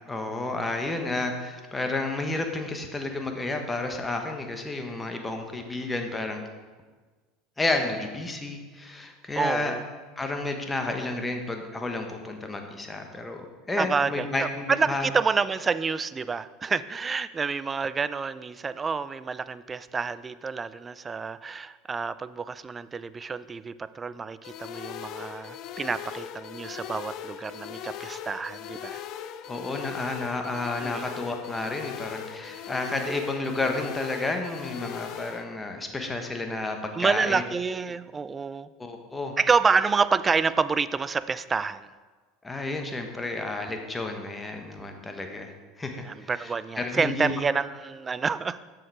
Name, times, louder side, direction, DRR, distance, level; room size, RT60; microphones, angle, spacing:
voice 1, 0.0-6.4 7.6-9.7 10.2-15.1 29.5-37.4 38.8-39.3 42.4-45.5 45.8-47.3, left 2 dB, 15° left, 4 dB, 1.2 m, -31 dB
voice 2, 9.4-9.8 13.8-29.0 30.8-31.1 36.9-38.7 39.4-41.9 46.0-48.6, right 5 dB, 25° right, 15 dB, 0.3 m, -28 dB
sound 1, 24.4-35.4, left 10 dB, 55° left, 0.5 m, -39 dB
7.6 x 6.5 x 4.8 m, 1.4 s
hypercardioid pair, 90°, 0 cm